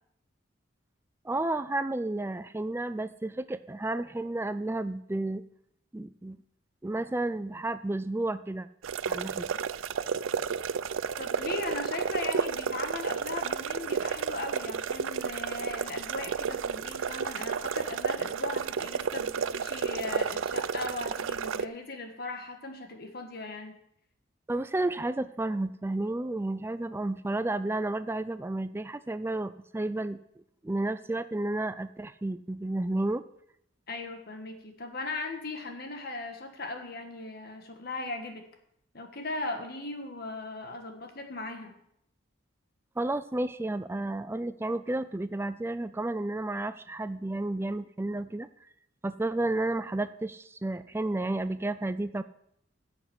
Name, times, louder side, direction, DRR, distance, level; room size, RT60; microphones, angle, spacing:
voice 1, 1.2-5.4 5.9-6.4 6.8-8.7 9.1-9.5 24.5-30.2 30.6-33.2 43.0-48.5 49.0-52.2, right 2 dB, 10° right, 13 dB, 0.3 m, -31 dB
sound 1, 8.8-21.6, right 6 dB, 85° right, 0.5 m, -32 dB
voice 2, 11.2-23.7 33.9-38.4 38.9-41.7, left 3 dB, 50° left, 5 dB, 1.5 m, -38 dB
9.9 x 7.3 x 8.0 m, 0.75 s
head